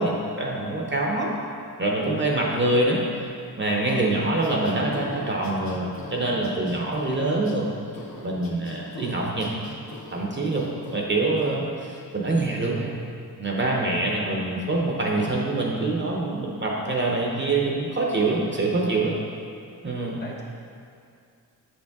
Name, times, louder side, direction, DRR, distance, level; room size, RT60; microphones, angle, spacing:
voice 1, 0.0-1.3 1.8-3.0 3.6-7.7 8.2-9.5 10.1-12.9 13.4-19.1 19.8-20.2, right 2 dB, 30° right, -2 dB, 0.6 m, -25 dB
sound 1, 3.9-7.6 7.9-10.2 10.5-11.0 11.4-11.6, left 2 dB, 60° left, 0.9 m, -40 dB
voice 2, 3.9-4.4 20.0-20.4, left 1 dB, 25° left, -2 dB, 0.8 m, -43 dB
7.4 x 5.3 x 3.5 m, 2.5 s
wide cardioid pair, 160°, 40 cm